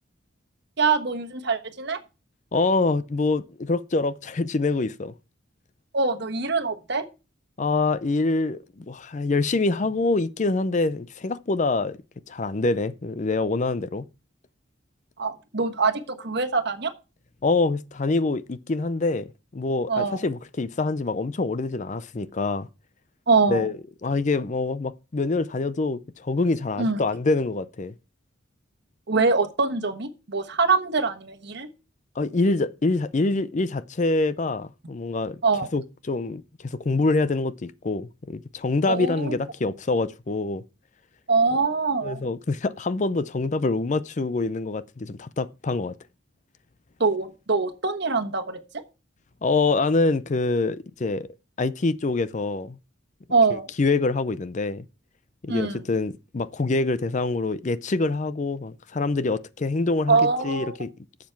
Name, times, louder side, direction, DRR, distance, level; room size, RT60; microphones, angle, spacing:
voice 1, 0.8-2.0 5.9-7.0 15.2-16.9 19.9-20.2 23.3-23.7 26.8-27.0 29.1-31.7 35.4-35.7 38.9-39.3 41.3-42.2 47.0-48.8 53.3-53.7 55.5-55.8 60.1-60.7, right 4 dB, 55° right, 1.3 m, -24 dB
voice 2, 2.5-5.1 7.6-12.0 12.3-14.1 17.4-22.7 23.5-23.8 24.0-27.9 32.2-35.4 35.7-40.6 42.0-46.0 49.4-51.3 51.6-52.8 53.5-54.8 55.4-60.9, left 3 dB, 35° left, 0.5 m, -25 dB
11.5 x 7.4 x 4.6 m
head